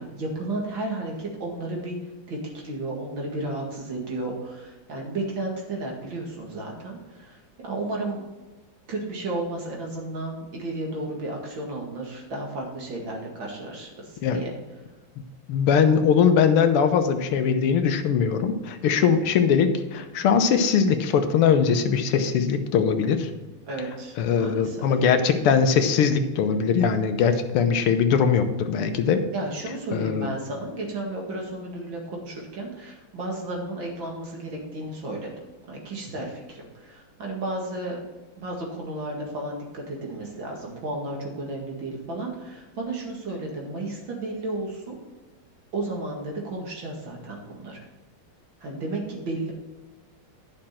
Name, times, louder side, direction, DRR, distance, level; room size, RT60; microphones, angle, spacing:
voice 1, 0.0-2.0 2.3-8.2 8.9-14.6 23.7-24.8 29.3-35.3 35.7-38.0 38.4-45.0 45.7-47.9 48.6-49.5, right 2 dB, 60° right, -1 dB, 2.7 m, -33 dB
voice 2, 15.5-23.3 24.2-29.2 29.9-30.3, left 6 dB, 90° left, 8 dB, 1.8 m, -21 dB
11.0 x 6.4 x 4.4 m, 1.2 s
omnidirectional pair, 2.4 m